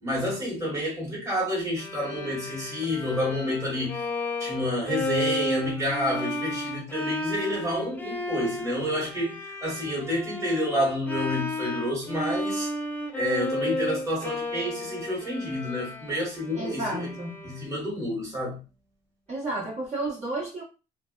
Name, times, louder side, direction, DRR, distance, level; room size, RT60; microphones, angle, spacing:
voice 1, 0.0-4.0 4.4-12.7 13.1-17.1 17.4-18.6, left 1 dB, 15° right, 1.4 m, -29 dB
Bowed string instrument, 1.8-17.9, left 1 dB, 10° left, 0.5 m, -33 dB
voice 2, 16.5-17.5 19.3-20.6, right 2 dB, 40° right, 1.2 m, -32 dB
2.5 x 2.1 x 2.3 m
cardioid pair, 110°, 17 cm